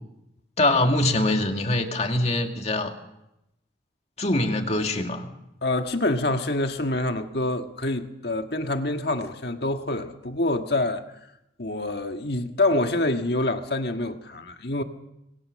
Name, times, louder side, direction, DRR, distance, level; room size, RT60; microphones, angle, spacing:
voice 1, 0.6-2.9 4.2-5.3, left 2 dB, 35° left, 2.2 m, -23 dB
voice 2, 5.6-11.0 11.6-14.8, left 2 dB, 55° left, 1.7 m, -26 dB
26.0 x 21.0 x 6.6 m
head